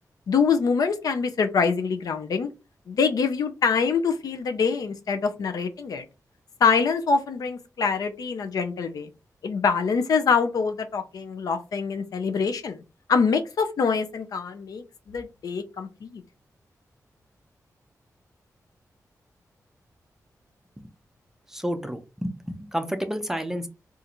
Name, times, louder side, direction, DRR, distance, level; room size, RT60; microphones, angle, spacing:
voice 1, 0.3-2.5 2.9-6.0 6.6-9.1 9.4-12.8 13.1-16.2, left 5 dB, 75° left, 0.5 m, -25 dB
voice 2, 21.5-23.7, equal, 5° right, 0.4 m, -30 dB
2.6 x 2.5 x 4.2 m
wide cardioid pair, 165°, 6 cm